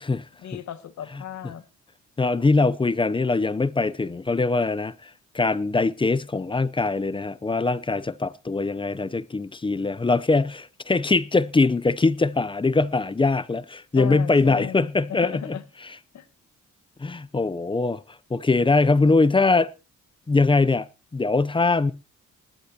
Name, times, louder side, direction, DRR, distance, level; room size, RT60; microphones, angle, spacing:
voice 1, 0.4-1.6 13.9-15.6 16.1-16.3, left 10 dB, 70° left, 1.5 m, -36 dB
voice 2, 2.2-5.1 5.3-15.6 17.0-18.0 18.3-19.7 20.3-20.9 21.1-21.9, left 3 dB, 15° left, 0.6 m, -22 dB
20.0 x 11.5 x 2.9 m
cardioid pair, 95°, 30 cm